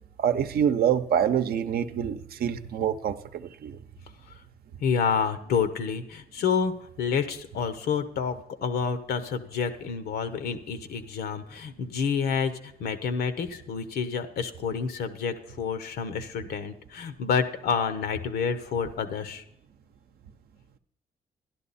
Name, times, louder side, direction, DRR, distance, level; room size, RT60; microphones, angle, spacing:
voice 1, 0.2-3.8, right 9 dB, 75° right, 10 dB, 0.7 m, -26 dB
voice 2, 4.8-19.4, left 6 dB, 85° left, 10 dB, 1.0 m, -29 dB
12.0 x 11.0 x 4.1 m, 0.77 s
cardioid pair, 95°, 16 cm